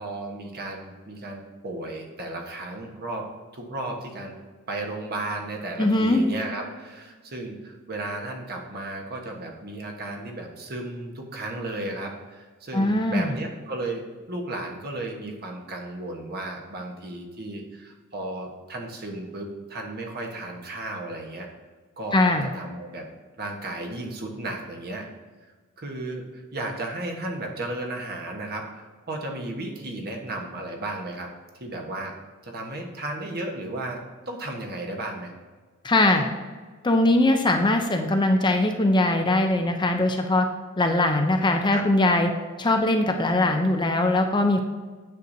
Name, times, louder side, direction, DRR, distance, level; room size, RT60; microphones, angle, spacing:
voice 1, 0.0-3.3 3.5-4.4 4.7-21.5 22.0-23.0 23.4-25.1 25.8-31.3 31.6-32.1 32.4-34.0 34.3-35.3 41.7-41.8, right 2 dB, 45° right, 1 dB, 1.2 m, -34 dB
voice 2, 5.8-6.2 12.7-13.3 22.1-22.5 35.8-36.2 36.8-40.5 40.8-42.3 42.6-44.6, left 2 dB, 20° left, 4 dB, 0.5 m, -21 dB
9.1 x 6.6 x 2.7 m, 1.4 s
head